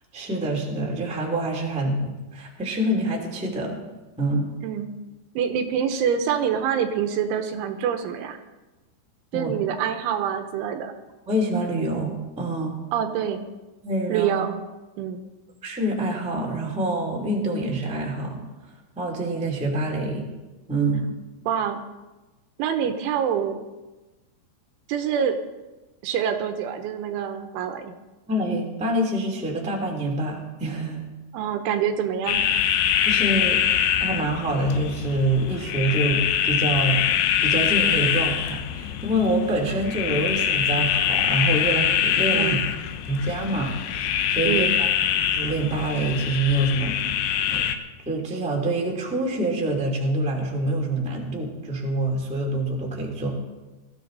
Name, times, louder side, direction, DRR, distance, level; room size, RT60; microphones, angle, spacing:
voice 1, 0.1-3.8 4.2-4.5 9.3-9.5 11.2-12.8 13.8-14.3 15.6-18.4 18.9-20.2 20.7-21.1 28.3-31.0 33.0-33.6 34.0-37.0 37.4-42.6 43.1-44.9 45.3-46.9 47.5-47.6 48.0-53.4, right 1 dB, 5° right, -2 dB, 0.9 m, -26 dB
voice 2, 5.4-8.4 9.3-10.9 12.9-13.5 14.1-14.6 15.0-15.2 21.4-21.8 22.6-23.6 24.9-25.4 26.0-27.9 31.3-32.5 42.3-42.7 44.5-44.8, right 8 dB, 80° right, 7 dB, 3.1 m, -26 dB
sound 1, 32.3-47.8, left 9 dB, 75° left, 2.9 m, -24 dB
21.0 x 14.0 x 4.0 m, 1.1 s
omnidirectional pair, 5.9 m